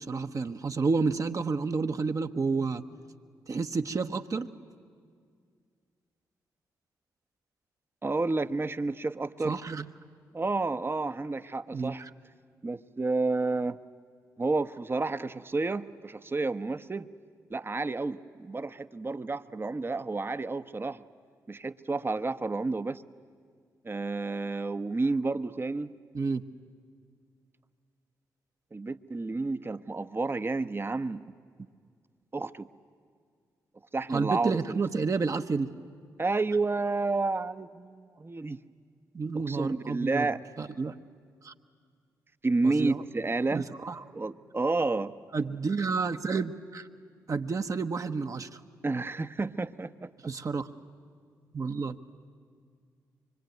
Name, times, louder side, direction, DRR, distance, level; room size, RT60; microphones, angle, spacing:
voice 1, 0.0-2.8 3.5-4.5 9.4-9.9 11.7-12.1 26.1-26.4 34.1-35.7 39.1-40.3 40.6-40.9 41.4-41.5 42.6-43.0 43.5-43.9 45.3-46.9 47.3-48.6 50.2-50.7 51.5-52.0, right 4 dB, 45° right, 7 dB, 1.1 m, -30 dB
voice 2, 8.0-9.6 10.3-12.0 12.6-13.8 14.4-17.1 17.5-21.0 21.5-23.0 23.8-25.9 28.7-31.2 32.3-32.7 33.9-34.8 36.2-38.6 39.3-40.4 42.4-43.8 44.1-45.1 48.8-50.1, right 3 dB, 30° right, 12 dB, 0.9 m, -30 dB
25.0 x 23.5 x 9.3 m, 2.1 s
supercardioid pair, 45°, 8 cm